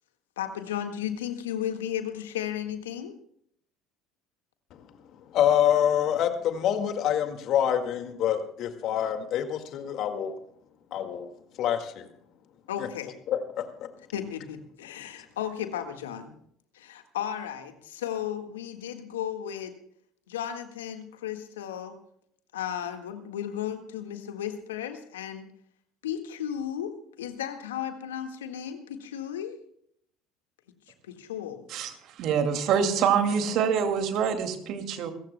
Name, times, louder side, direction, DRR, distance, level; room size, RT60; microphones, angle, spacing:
voice 1, 0.4-3.1 12.7-13.1 14.1-16.3 16.7-19.7 20.3-22.0 22.5-25.5 26.0-29.6 31.0-31.7, left 10 dB, 85° left, 6 dB, 1.6 m, -34 dB
voice 2, 5.3-10.3 10.9-11.3 11.6-12.1 13.3-13.6, left 10 dB, 60° left, 7 dB, 1.9 m, -26 dB
voice 3, 32.2-35.1, right 7 dB, 60° right, 6 dB, 2.3 m, -25 dB
27.0 x 14.5 x 2.2 m, 0.68 s
hypercardioid pair, 65°, 0 cm